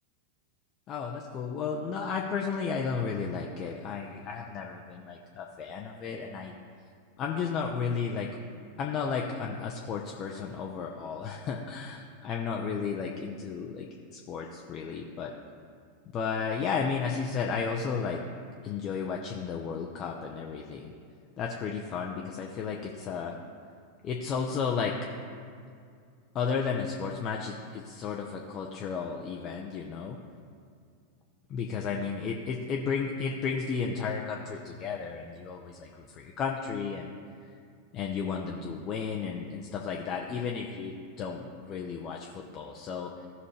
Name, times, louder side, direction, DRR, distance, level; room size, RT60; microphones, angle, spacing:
voice 1, 0.9-6.5 7.2-8.3 8.8-15.3 16.1-18.2 18.6-20.9 21.4-23.4 24.0-24.9 26.3-30.2 31.5-37.2 37.4-37.5 37.9-43.2, left 5 dB, 30° left, 0 dB, 0.7 m, -33 dB
15.5 x 5.4 x 3.3 m, 2.3 s
figure-of-eight pair, 90°, 0 cm